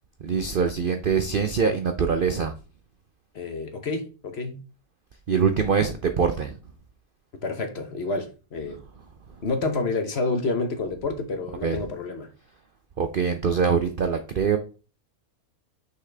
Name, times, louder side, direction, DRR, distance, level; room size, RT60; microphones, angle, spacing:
voice 1, 0.2-2.5 5.3-6.6 8.7-8.8 9.3-9.4 11.6-11.9 13.0-14.6, right 6 dB, 60° right, 0.5 m, -24 dB
voice 2, 3.3-4.6 7.4-8.8 9.4-12.3, left 3 dB, 45° left, 1.0 m, -29 dB
6.1 x 5.8 x 3.3 m
omnidirectional pair, 1.7 m